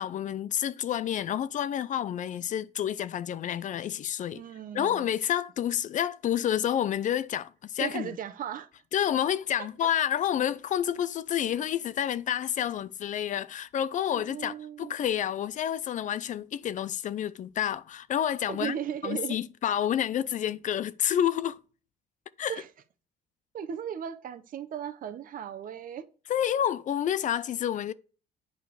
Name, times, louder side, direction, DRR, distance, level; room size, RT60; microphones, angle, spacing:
voice 1, 0.0-4.4 4.7-8.1 8.9-18.8 19.0-21.6 22.4-22.5 26.3-27.9, left 10 dB, 50° left, 0.5 m, -29 dB
voice 2, 4.3-5.1 7.8-8.7 9.6-9.9 14.1-15.0 18.5-19.4 22.5-22.7 23.5-26.1, right 9 dB, 55° right, 0.9 m, -36 dB
9.0 x 4.9 x 5.2 m
cardioid pair, 110°, 17 cm